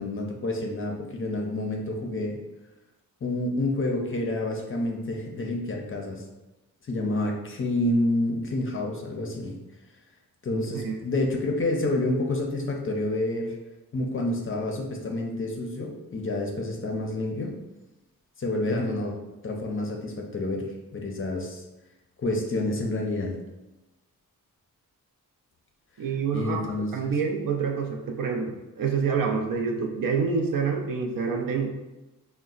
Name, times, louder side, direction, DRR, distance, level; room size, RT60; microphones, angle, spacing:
voice 1, 0.0-2.4 3.2-6.2 6.9-9.5 10.4-13.6 13.9-17.5 18.4-19.2 19.4-21.6 22.2-23.4 26.0-27.1, left 2 dB, 35° left, 1 dB, 0.5 m, -28 dB
voice 2, 10.5-11.0 26.0-26.6 26.9-31.7, right 5 dB, 70° right, 3 dB, 0.5 m, -27 dB
3.8 x 2.1 x 2.4 m, 1.0 s
wide cardioid pair, 95°, 36 cm